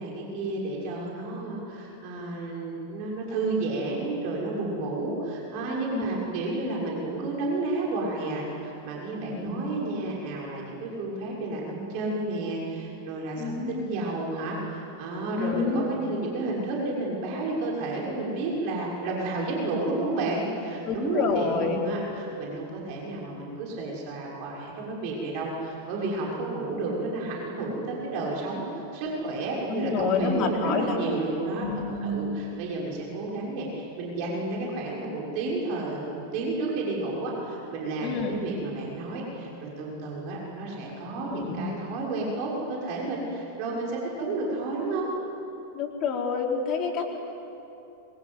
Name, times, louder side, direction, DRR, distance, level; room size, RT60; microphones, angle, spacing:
voice 1, 0.0-31.7 32.0-45.1, right 2 dB, 45° right, -3 dB, 6.5 m, -31 dB
voice 2, 13.4-13.8 15.4-15.9 20.8-21.8 29.7-31.1 31.6-32.0 38.0-38.4 41.3-41.6 45.7-47.2, left 5 dB, 35° left, 1 dB, 4.4 m, -28 dB
26.0 x 24.5 x 8.2 m, 2.8 s
figure-of-eight pair, 90°, 0 cm